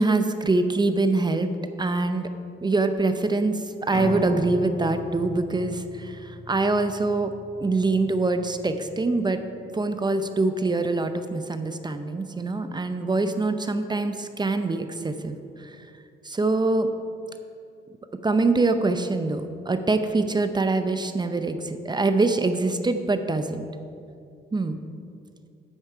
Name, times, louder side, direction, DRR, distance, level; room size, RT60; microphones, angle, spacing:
voice 1, 0.0-1.5 1.8-2.3 2.6-7.3 7.6-9.4 9.7-15.8 16.2-16.9 18.2-23.7 24.5-24.8, right 3 dB, 20° right, 9 dB, 0.6 m, -24 dB
Piano, 3.9-10.1, left 2 dB, 35° left, 1.1 m, -37 dB
8.9 x 8.2 x 4.9 m, 2.5 s
cardioid pair, 90°, 20 cm